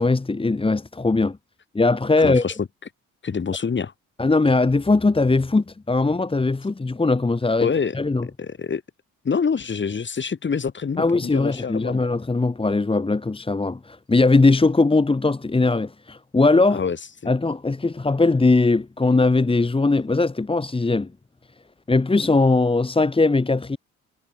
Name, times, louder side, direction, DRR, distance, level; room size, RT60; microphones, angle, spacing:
voice 1, 0.0-1.4 1.8-2.4 4.2-7.7 7.9-8.3 11.0-16.8 17.3-21.1 21.9-23.8, left 3 dB, 20° left, 1.8 m, -20 dB
voice 2, 2.2-2.7 3.2-3.9 7.6-8.0 8.2-8.8 9.2-12.0 16.7-17.0 17.2-17.3, left 6 dB, 40° left, 4.8 m, -26 dB
cardioid pair, 90°, 30 cm